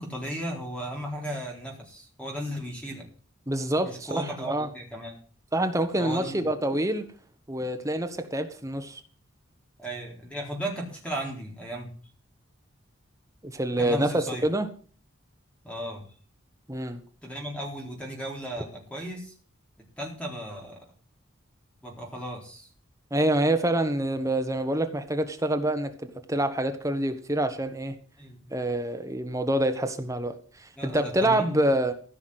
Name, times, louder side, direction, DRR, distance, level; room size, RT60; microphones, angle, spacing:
voice 1, 0.0-3.0 3.8-5.2 6.0-6.5 9.8-11.9 13.8-14.5 15.6-16.0 17.2-19.3 20.0-20.8 21.8-22.7 28.2-28.5 30.8-31.5, equal, 5° left, 3.9 m, -35 dB
voice 2, 3.5-4.7 5.5-7.0 7.5-9.0 13.4-14.7 16.7-17.0 23.1-25.9 26.3-27.9 28.5-31.9, right 1 dB, 15° right, 1.1 m, -26 dB
15.0 x 6.0 x 7.9 m
head